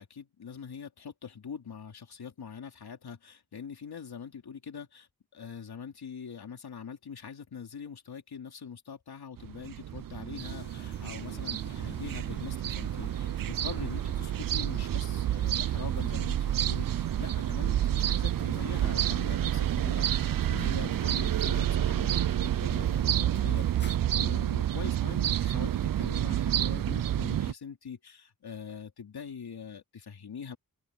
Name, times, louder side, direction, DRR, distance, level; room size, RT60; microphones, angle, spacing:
voice 1, 0.0-30.6, left 6 dB, 90° left, 3.2 m, -43 dB
sound 1, 9.4-27.5, right 11 dB, 65° right, 0.5 m, -29 dB
sound 2, 10.4-24.0, left 3 dB, 30° left, 2.0 m, -52 dB
open air
wide cardioid pair, 115°, 37 cm